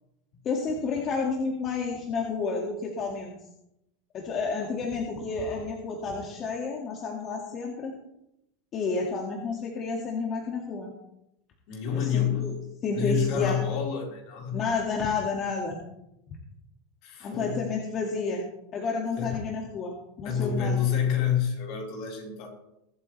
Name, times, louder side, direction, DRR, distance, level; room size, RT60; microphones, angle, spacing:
voice 1, 0.4-3.3 4.1-7.9 8.7-10.9 11.9-12.5 12.8-13.6 14.5-15.8 17.2-18.5 18.7-20.8, left 4 dB, 35° left, 0 dB, 2.0 m, -30 dB
voice 2, 11.7-12.5 12.9-14.6 17.0-17.7 19.2-19.4 20.2-22.5, left 8 dB, 55° left, -1 dB, 4.3 m, -28 dB
22.5 x 8.7 x 3.3 m, 0.84 s
supercardioid pair, 140°, 0 cm